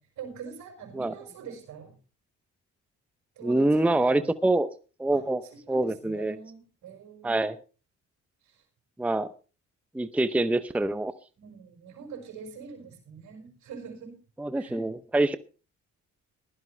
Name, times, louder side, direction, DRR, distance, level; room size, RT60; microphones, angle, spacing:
voice 1, 0.2-1.9 3.3-4.3 5.1-5.2 5.5-7.4 8.4-8.6 11.4-14.1 14.5-14.8, right 6 dB, 70° right, 0 dB, 5.0 m, -44 dB
voice 2, 3.4-4.7 5.0-6.4 7.2-7.6 9.0-9.3 9.9-11.1 14.4-15.4, right 2 dB, 5° right, 12 dB, 0.6 m, -25 dB
16.0 x 12.0 x 3.3 m, 0.35 s
cardioid pair, 90°, 30 cm